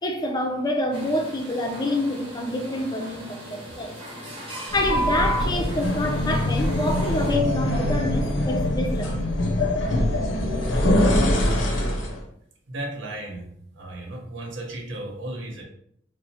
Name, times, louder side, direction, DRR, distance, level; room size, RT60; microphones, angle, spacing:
voice 1, 0.0-4.0 4.7-9.3, left 1 dB, 20° left, 0.4 m, -27 dB
sound 1, 0.9-7.3, equal, 30° right, 0.8 m, -40 dB
sound 2, 4.7-12.2, left 1 dB, 80° left, 0.6 m, -23 dB
voice 2, 12.7-15.6, right 1 dB, 75° right, 0.7 m, -35 dB
3.0 x 2.0 x 2.7 m
head